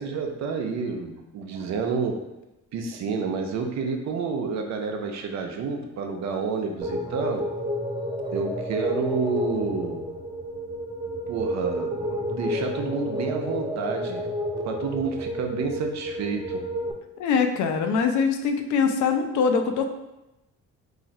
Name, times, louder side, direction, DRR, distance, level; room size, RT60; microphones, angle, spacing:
voice 1, 0.0-2.2 2.7-7.5 8.3-10.0 11.3-11.9 12.3-14.3 14.6-16.6, right 5 dB, 65° right, 3 dB, 0.6 m, -29 dB
sound 1, 6.8-16.9, equal, 15° right, 0.4 m, -30 dB
voice 2, 17.2-19.9, left 5 dB, 70° left, 6 dB, 0.5 m, -23 dB
2.5 x 2.4 x 4.0 m, 0.97 s
cardioid pair, 90°, 30 cm